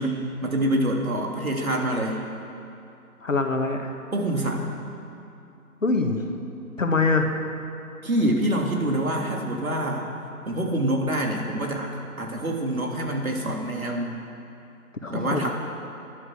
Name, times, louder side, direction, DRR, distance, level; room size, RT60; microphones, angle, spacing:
voice 1, 0.0-2.2 4.1-4.6 8.0-10.1 10.5-11.9 12.2-14.1 15.1-15.5, right 1 dB, 65° right, 0 dB, 3.3 m, -26 dB
voice 2, 3.2-3.9 5.8-6.2 6.8-7.3 15.0-15.5, left 3 dB, 55° left, 4 dB, 1.9 m, -23 dB
20.5 x 11.0 x 6.4 m, 2.7 s
figure-of-eight pair, 155°, 45 cm